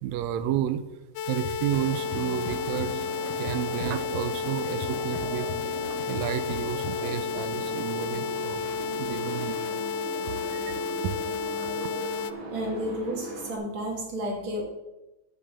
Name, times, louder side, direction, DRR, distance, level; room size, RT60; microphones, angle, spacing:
voice 1, 0.0-0.8 1.3-5.5 6.1-8.6 9.0-9.6 10.3-11.1 11.6-11.7, right 10 dB, 90° right, 11 dB, 1.5 m, -31 dB
sound 1, 1.2-12.3, left 6 dB, 80° left, 1.9 m, -32 dB
sound 2, 1.4-1.5 1.9-2.9 3.3-4.4 4.6-6.9, left 3 dB, 55° left, 1.8 m, -38 dB
sound 3, 1.7-13.6, right 2 dB, 60° right, 2.9 m, -38 dB
voice 2, 12.5-14.6, equal, 45° right, 0 dB, 2.6 m, -31 dB
8.6 x 6.6 x 6.7 m, 1.0 s
omnidirectional pair, 3.7 m